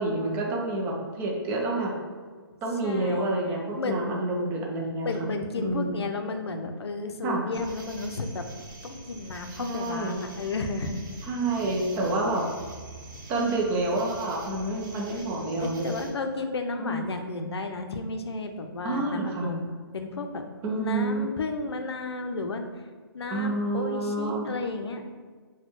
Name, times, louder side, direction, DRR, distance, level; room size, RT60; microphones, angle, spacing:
voice 1, 0.0-2.0 2.6-5.3 5.6-6.0 7.2-7.5 9.6-10.3 11.3-12.5 13.3-15.9 16.8-17.0 18.8-19.5 20.6-21.3 23.3-24.5, right 2 dB, 15° right, -1 dB, 0.4 m, -28 dB
voice 2, 2.8-4.0 5.0-8.5 8.8-11.0 14.7-15.2 15.6-20.5 20.8-22.7 23.1-25.0, left 3 dB, 85° left, 5 dB, 0.5 m, -33 dB
sound 1, 7.5-16.1, right 2 dB, 50° right, 0.7 m, -45 dB
4.1 x 2.1 x 3.0 m, 1.5 s
hypercardioid pair, 150°, 13 cm